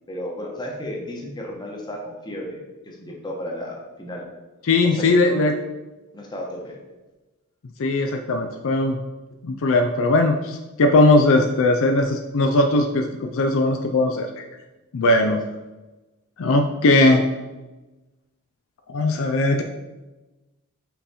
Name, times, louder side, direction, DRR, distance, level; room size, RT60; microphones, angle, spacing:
voice 1, 0.1-2.6 2.8-4.3 4.8-5.5 6.1-6.8 15.0-15.4, left 1 dB, 20° left, -1 dB, 1.1 m, -33 dB
voice 2, 4.7-5.5 7.8-9.0 9.4-14.4 14.9-15.4 16.4-17.2 18.9-19.6, left 2 dB, 60° left, 5 dB, 0.4 m, -19 dB
5.7 x 4.2 x 4.2 m, 1.1 s
head